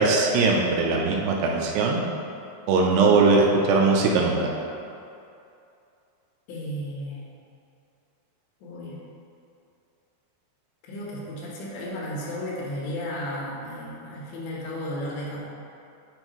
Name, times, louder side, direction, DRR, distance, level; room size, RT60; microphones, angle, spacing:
voice 1, 0.0-2.0 2.7-4.4, right 3 dB, 80° right, -1 dB, 2.6 m, -20 dB
voice 2, 2.8-3.2 6.5-7.3 8.6-9.0 10.9-15.4, left 1 dB, 85° left, -5 dB, 3.5 m, -34 dB
9.6 x 4.3 x 3.0 m, 2.6 s
omnidirectional pair, 4.9 m